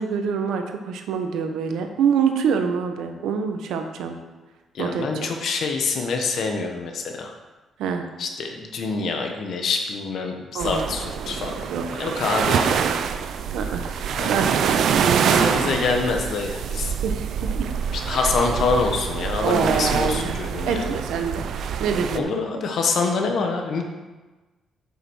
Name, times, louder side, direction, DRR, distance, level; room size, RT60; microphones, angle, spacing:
voice 1, 0.0-4.2 4.8-5.1 7.8-8.1 10.5-10.9 11.7-12.0 13.5-13.9 14.3-15.8 17.0-17.7 19.4-20.4 20.6-21.4 21.8-22.4, right 6 dB, 85° right, 5 dB, 1.1 m, -25 dB
voice 2, 4.7-7.3 8.2-11.7 12.0-12.9 14.2-14.4 15.3-16.9 17.9-21.0 22.1-23.8, left 4 dB, 50° left, 3 dB, 1.2 m, -26 dB
sound 1, 10.6-22.2, right 7 dB, 60° right, 0.5 m, -25 dB
8.1 x 5.8 x 6.3 m, 1.2 s
cardioid pair, 175°, 0 cm